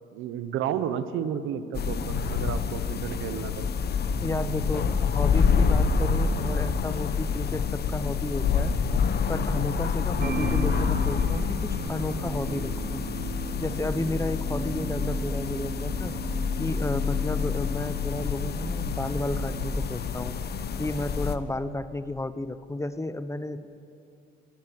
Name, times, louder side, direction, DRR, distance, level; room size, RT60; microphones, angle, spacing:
voice 1, 0.1-3.6, right 9 dB, 90° right, 12 dB, 1.0 m, -32 dB
sound 1, 1.7-21.4, left 5 dB, 55° left, 1.1 m, -27 dB
voice 2, 4.2-8.7 9.3-13.0 13.6-16.1 16.6-20.3 20.8-23.7, left 2 dB, 15° left, 12 dB, 0.9 m, -32 dB
sound 2, 10.2-19.7, right 7 dB, 50° right, 0.8 m, -37 dB
23.5 x 15.5 x 7.9 m, 2.6 s
cardioid pair, 90°, 20 cm